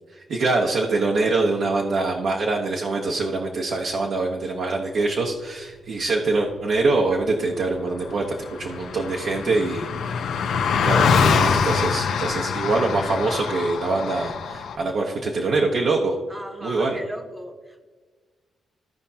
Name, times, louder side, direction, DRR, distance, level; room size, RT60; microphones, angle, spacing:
voice 1, 0.1-10.2 10.7-16.2 16.6-17.0, right 3 dB, 60° right, -1 dB, 1.1 m, -24 dB
Car passing by, 7.7-7.8 7.9-14.8, left 6 dB, 85° left, 0.8 m, -24 dB
voice 2, 16.3-17.9, equal, 10° right, 4 dB, 1.1 m, -37 dB
16.0 x 5.3 x 2.9 m, 1.4 s
cardioid pair, 120°, 0 cm